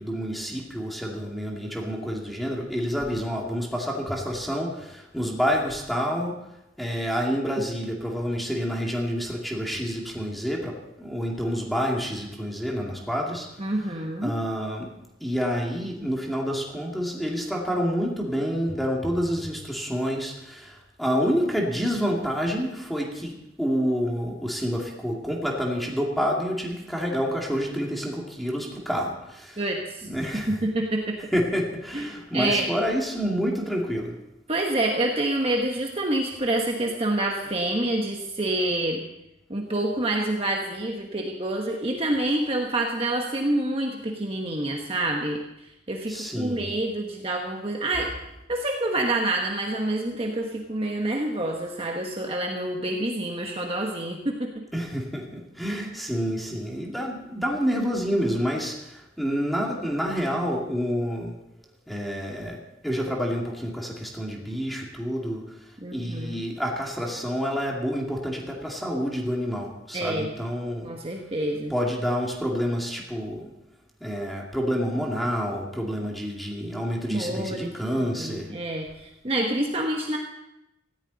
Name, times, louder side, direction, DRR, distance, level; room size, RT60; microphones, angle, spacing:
voice 1, 0.0-6.4 6.8-13.5 14.2-14.9 15.2-29.6 30.0-30.6 31.3-34.2 46.1-46.7 54.7-61.3 61.9-65.5 65.9-70.9 71.7-73.5 74.0-78.5, equal, ahead, -1 dB, 2.4 m, -28 dB
voice 2, 13.6-14.3 29.6-30.1 30.3-31.2 31.9-32.7 34.5-39.0 39.5-48.1 48.5-54.6 65.8-66.4 69.9-70.3 70.8-71.7 77.1-80.2, right 1 dB, 30° right, 1 dB, 1.4 m, -27 dB
18.5 x 14.5 x 4.1 m, 0.88 s
head